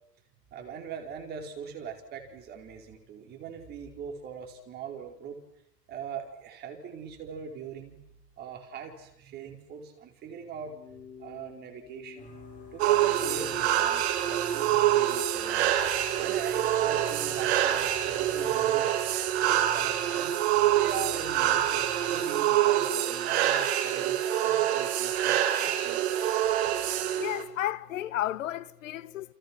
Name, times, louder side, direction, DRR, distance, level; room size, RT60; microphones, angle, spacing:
voice 1, 0.5-5.4 5.9-8.0 8.4-10.7 11.2-12.3 12.7-15.7 16.2-19.0 19.4-20.3 20.7-26.2, right 7 dB, 20° right, 4.7 m, -41 dB
sound 1, 10.7-13.9, left 7 dB, 70° left, 7.5 m, -49 dB
sound 2, 12.2-22.2, right 1 dB, 15° left, 7.5 m, -49 dB
sound 3, 12.8-27.4, right 11 dB, 40° right, 3.7 m, -26 dB
voice 2, 27.2-29.3, left 13 dB, 50° left, 1.6 m, -32 dB
29.5 x 29.0 x 6.2 m
hypercardioid pair, 155°, 49 cm